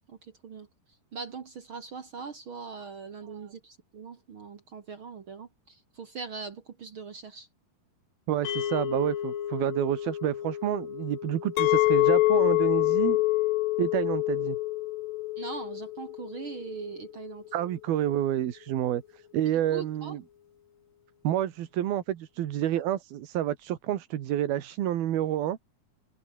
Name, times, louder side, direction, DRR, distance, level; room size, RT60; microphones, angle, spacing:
voice 1, 1.1-7.5 15.4-17.5 19.7-20.2, right 5 dB, 50° right, 1.7 m, -41 dB
voice 2, 8.3-13.2 13.8-14.6 17.5-20.2 21.2-25.6, right 12 dB, 80° right, 3.5 m, -29 dB
sound 1, 8.4-18.7, left 9 dB, 60° left, 1.4 m, -39 dB
Chink clink, 11.6-16.7, left 19 dB, 80° left, 2.3 m, -25 dB
omnidirectional pair, 4.3 m